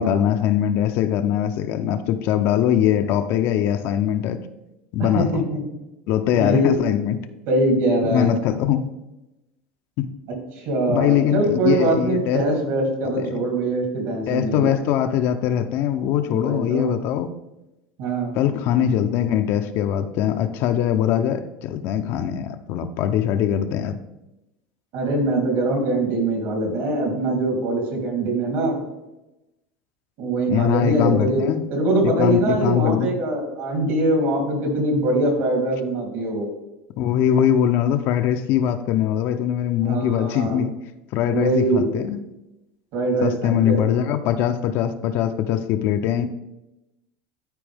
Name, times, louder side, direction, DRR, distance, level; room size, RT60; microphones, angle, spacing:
voice 1, 0.0-4.4 4.9-5.4 6.1-7.2 8.0-8.9 10.0-10.1 10.9-12.4 13.2-13.4 14.3-17.3 18.3-24.0 30.5-31.7 32.0-33.1 37.0-40.8 41.1-42.2 43.2-46.3, left 10 dB, 55° left, 8 dB, 0.6 m, -22 dB
voice 2, 5.0-5.6 6.3-6.8 7.5-8.3 10.6-14.7 16.3-16.9 18.0-18.3 24.9-28.8 30.2-36.5 39.8-40.6 41.3-41.9 42.9-43.8, right 2 dB, 60° right, 1 dB, 3.0 m, -22 dB
12.5 x 4.5 x 3.5 m, 0.97 s
supercardioid pair, 120°, 5 cm